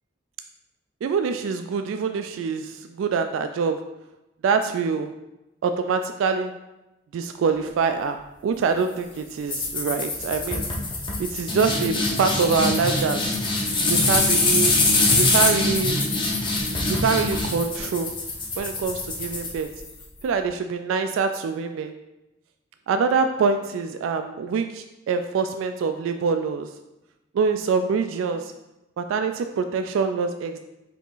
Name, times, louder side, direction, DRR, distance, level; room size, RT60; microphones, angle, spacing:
voice 1, 1.0-3.8 4.4-5.1 5.6-6.5 7.1-10.6 11.2-13.4 13.9-14.8 15.1-16.0 16.9-18.1 18.6-19.7 20.2-21.9 22.9-26.7 27.3-28.5 29.0-30.6, right 5 dB, 80° right, 8 dB, 0.3 m, -25 dB
sound 1, 9.5-20.0, left 2 dB, 25° left, 0.7 m, -23 dB
4.7 x 2.9 x 3.8 m, 0.96 s
head